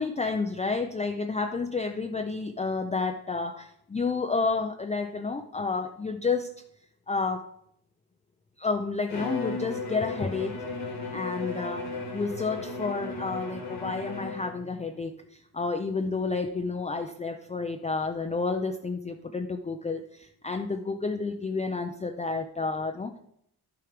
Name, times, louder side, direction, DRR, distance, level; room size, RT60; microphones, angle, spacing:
voice 1, 0.0-6.5 7.1-7.5 8.6-10.7 11.1-23.2, left 4 dB, 15° left, 5 dB, 0.4 m, -30 dB
Bowed string instrument, 9.1-14.7, left 3 dB, 90° left, 2.8 m, -35 dB
12.0 x 4.6 x 5.0 m, 0.72 s
wide cardioid pair, 140°, 41 cm